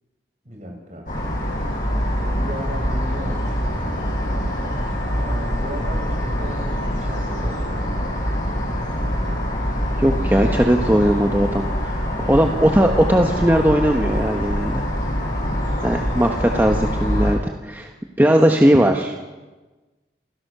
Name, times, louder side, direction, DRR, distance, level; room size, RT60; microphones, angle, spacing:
voice 1, 0.4-1.1 2.2-4.8 5.2-8.1 12.2-12.5 15.3-15.7, equal, 45° right, 2 dB, 5.6 m, -36 dB
sound 1, 1.1-17.3, equal, 45° left, 7.6 m, -24 dB
voice 2, 10.0-14.8 15.8-17.9 18.2-19.2, equal, 10° right, 3 dB, 1.2 m, -18 dB
28.5 x 16.5 x 6.9 m, 1.2 s
head